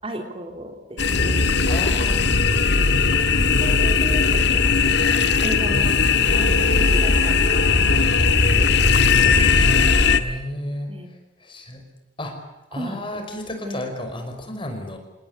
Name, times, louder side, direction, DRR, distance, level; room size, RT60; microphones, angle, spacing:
voice 1, 0.0-1.4 3.6-5.1 5.4-5.9 6.3-8.7 10.9-11.1 12.7-13.0 13.6-13.8, right 1 dB, 30° right, 4 dB, 3.2 m, -35 dB
sound 1, 1.0-10.2, left 4 dB, 65° left, 1.7 m, -18 dB
voice 2, 1.7-2.4 10.1-10.9 11.4-11.8 12.2-12.4 12.7-15.0, left 1 dB, 30° left, 5 dB, 5.4 m, -32 dB
28.5 x 19.0 x 9.6 m, 1.0 s
head